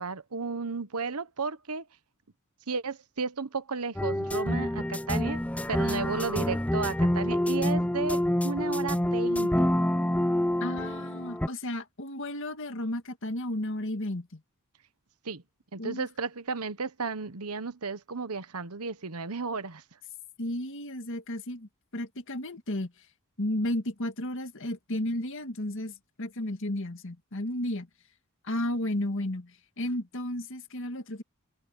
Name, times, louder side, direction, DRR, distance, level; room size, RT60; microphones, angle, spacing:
voice 1, 0.0-1.8 2.7-5.4 5.7-9.7 15.2-15.4 15.7-19.8, right 4 dB, 85° right, 1.2 m, -33 dB
sound 1, 4.0-11.5, left 1 dB, 5° left, 0.6 m, -27 dB
voice 2, 10.6-14.4 15.8-16.1 20.4-22.9 23.4-27.9 28.4-31.2, left 1 dB, 60° left, 1.9 m, -33 dB
head